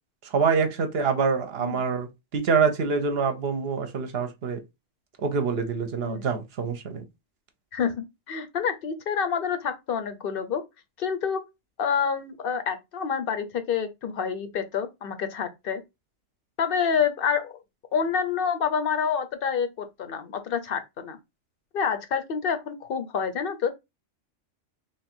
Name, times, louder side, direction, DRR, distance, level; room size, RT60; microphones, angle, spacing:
voice 1, 0.2-2.1 2.3-4.6 5.2-7.0, right 5 dB, 60° right, 0.8 m, -25 dB
voice 2, 7.7-10.6 11.0-11.4 11.8-15.8 16.6-17.6 17.9-21.2 21.7-23.7, left 7 dB, 55° left, 0.7 m, -28 dB
3.2 x 2.4 x 4.3 m
omnidirectional pair, 1.3 m